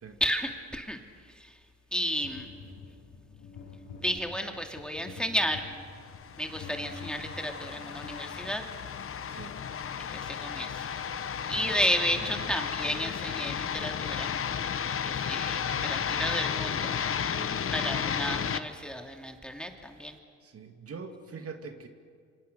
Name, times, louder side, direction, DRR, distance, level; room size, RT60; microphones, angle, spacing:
voice 1, 0.2-1.0 1.4-1.5 1.9-2.5 4.0-5.7 6.4-8.7 10.0-10.9 11.5-14.3 15.0-16.9 17.7-20.2, equal, 5° left, 4 dB, 2.5 m, -32 dB
sound 1, 2.2-8.8, left 4 dB, 75° left, 6.0 m, -47 dB
sound 2, 6.1-18.6, left 7 dB, 45° left, 1.2 m, -33 dB
voice 2, 11.5-11.8 12.3-12.4 17.3-17.6 20.4-21.9, right 5 dB, 50° right, 6 dB, 2.3 m, -44 dB
27.0 x 25.5 x 6.8 m, 2.1 s
cardioid pair, 90°, 30 cm